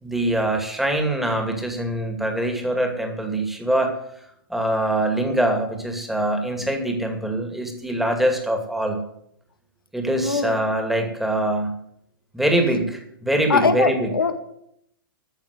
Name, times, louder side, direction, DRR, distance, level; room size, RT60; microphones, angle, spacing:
voice 1, 0.0-4.0 4.5-9.0 9.9-11.7 12.3-14.1, right 1 dB, ahead, 4 dB, 2.4 m, -23 dB
voice 2, 10.2-10.6 13.5-14.3, left 5 dB, 80° left, 7 dB, 1.8 m, -21 dB
13.5 x 6.9 x 8.4 m, 0.74 s
figure-of-eight pair, 110°, 12 cm